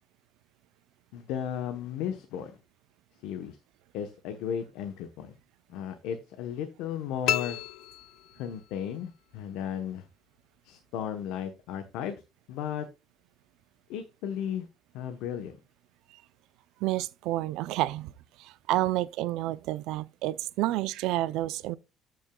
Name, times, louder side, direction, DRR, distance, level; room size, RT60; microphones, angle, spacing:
voice 1, 1.1-2.6 3.2-3.6 3.9-5.4 5.7-7.6 8.4-10.1 10.6-12.2 12.5-12.9 13.9-14.7 14.9-15.6, left 9 dB, 85° left, 1.1 m, -35 dB
sound 1, 7.3-8.8, left 13 dB, 65° left, 0.4 m, -32 dB
voice 2, 16.8-21.8, right 16 dB, 75° right, 0.5 m, -30 dB
14.0 x 6.2 x 2.3 m
cardioid pair, 165°, 0 cm